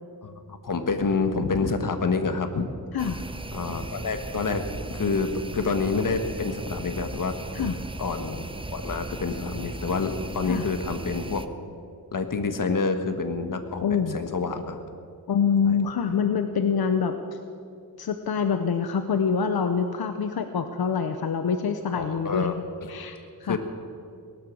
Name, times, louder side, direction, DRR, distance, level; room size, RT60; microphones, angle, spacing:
voice 1, 0.2-2.7 3.5-4.6 4.9-7.3 8.0-8.5 8.7-11.4 12.1-14.8 15.6-15.8 21.9-22.5 22.8-22.9 23.4-23.6, left 4 dB, 60° left, 8 dB, 1.5 m, -28 dB
sound 1, 3.0-11.5, right 2 dB, 15° right, 0.7 m, -37 dB
voice 2, 13.8-14.2 15.3-17.2 18.0-22.5 22.9-23.6, left 6 dB, 90° left, 8 dB, 0.9 m, -25 dB
18.5 x 12.5 x 6.4 m, 2.3 s
wide cardioid pair, 90°, 36 cm